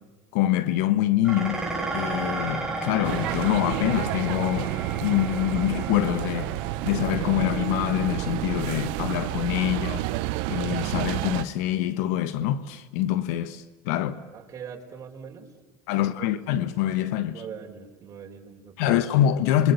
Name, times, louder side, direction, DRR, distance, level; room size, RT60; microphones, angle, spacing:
voice 1, 0.3-1.7 1.9-6.5 6.8-10.1 10.5-14.2 15.9-17.4 18.8-19.7, left 12 dB, 75° left, 1.3 m, -25 dB
Dishes pots and pans, 1.2-10.1, right 3 dB, 5° right, 5.1 m, -35 dB
sound 1, 3.0-11.4, right 17 dB, 70° right, 1.1 m, -30 dB
voice 2, 14.3-15.5 15.9-16.3 17.3-19.0, right 7 dB, 35° right, 4.9 m, -42 dB
27.5 x 22.5 x 8.4 m
supercardioid pair, 115°, 9 cm